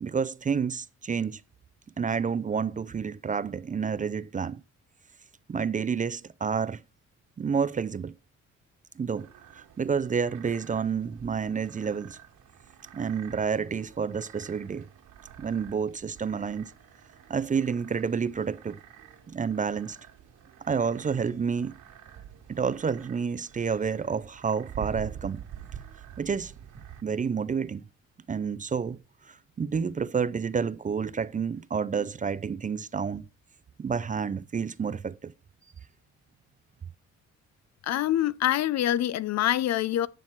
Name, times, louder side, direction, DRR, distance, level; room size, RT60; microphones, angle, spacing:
voice 1, 0.0-1.4 2.0-4.6 5.5-6.8 7.4-8.1 9.0-9.3 9.5-12.2 12.9-14.9 15.4-16.7 17.3-18.8 19.3-20.0 20.6-21.7 22.5-25.4 26.2-26.5 27.0-27.8 28.3-29.0 29.3-33.3 33.8-35.3, right 6 dB, 25° right, 0.5 m, -29 dB
sound 1, 9.2-27.0, right 10 dB, 90° right, 2.1 m, -47 dB
voice 2, 37.8-40.1, left 12 dB, 60° left, 0.5 m, -25 dB
9.8 x 6.0 x 4.6 m
cardioid pair, 90°, 30 cm